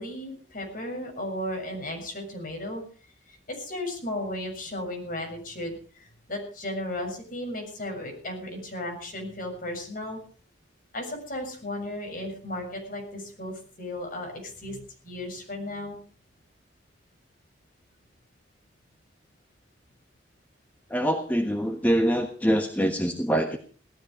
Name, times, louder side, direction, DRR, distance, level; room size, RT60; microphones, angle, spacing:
voice 1, 0.0-2.8 3.3-10.2 10.9-16.0, left 1 dB, 45° left, 2 dB, 7.0 m, -35 dB
voice 2, 20.9-23.6, equal, 10° left, 4 dB, 1.3 m, -24 dB
18.0 x 13.5 x 5.2 m, 0.41 s
head